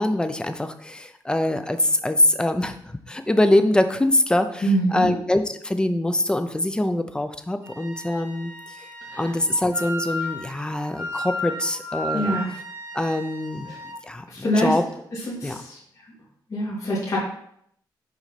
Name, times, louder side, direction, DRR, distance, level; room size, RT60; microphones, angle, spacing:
voice 1, 0.0-2.8 3.1-8.5 8.8-8.9 9.2-12.4 12.9-13.7 14.0-14.8 15.4-15.6, left 1 dB, 10° left, 8 dB, 0.6 m, -23 dB
voice 2, 4.6-5.1 9.1-9.2 12.1-12.5 13.7-13.8 14.3-14.7 15.3-15.8 16.5-17.2, equal, 45° left, -7 dB, 2.4 m, -24 dB
Wind instrument woodwind instrument, 7.6-14.0, equal, 25° right, 2.9 m, -34 dB
6.0 x 4.1 x 5.8 m, 0.69 s
wide cardioid pair, 120°, 8 cm